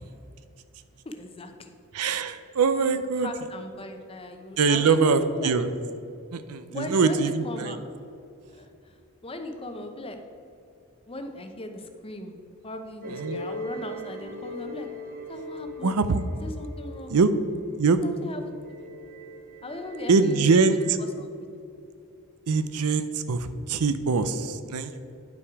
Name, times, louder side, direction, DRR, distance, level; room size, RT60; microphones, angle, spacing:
voice 1, 1.0-1.7 3.2-5.5 6.7-7.8 8.5-9.0 9.2-10.2 11.1-12.3 12.6-14.9 15.3-16.0 16.4-17.1 18.0-18.5 19.6-21.3, left 1 dB, 25° left, 6 dB, 0.7 m, -37 dB
voice 2, 1.9-3.3 4.6-5.7 6.3-7.8 13.1-13.4 15.8-16.2 17.1-17.3 17.8-18.0 20.1-21.0 22.5-25.1, right 4 dB, 85° right, 11 dB, 0.6 m, -23 dB
sound 1, 13.0-20.9, equal, 40° right, 0.7 m, -40 dB
9.9 x 6.0 x 4.7 m, 2.6 s
head